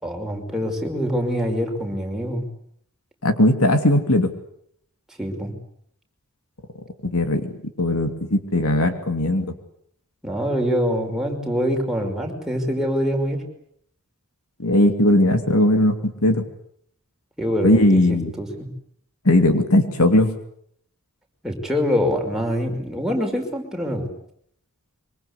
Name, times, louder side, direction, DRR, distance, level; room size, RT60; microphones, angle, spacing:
voice 1, 0.0-2.5 5.1-5.5 10.2-13.4 17.4-18.7 21.4-24.1, equal, ahead, 1 dB, 5.4 m, -24 dB
voice 2, 3.2-4.3 7.0-7.5 7.8-9.5 14.6-16.4 17.6-18.3 19.2-20.3, left 1 dB, 70° left, 7 dB, 3.0 m, -18 dB
25.0 x 24.5 x 8.3 m, 0.69 s
head